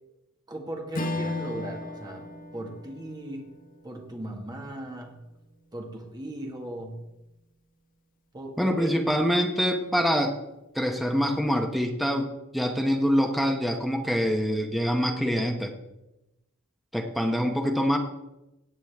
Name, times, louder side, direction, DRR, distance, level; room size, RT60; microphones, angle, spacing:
voice 1, 0.5-2.2 2.5-3.5 3.8-5.2 5.7-7.0 8.3-9.0, right 1 dB, 20° right, 1 dB, 1.7 m, -37 dB
Strum, 0.9-5.5, left 1 dB, 40° left, 1.2 m, -37 dB
voice 2, 8.6-10.4 10.7-15.7 16.9-18.0, equal, ahead, 3 dB, 0.9 m, -25 dB
17.5 x 9.0 x 3.5 m, 0.93 s
head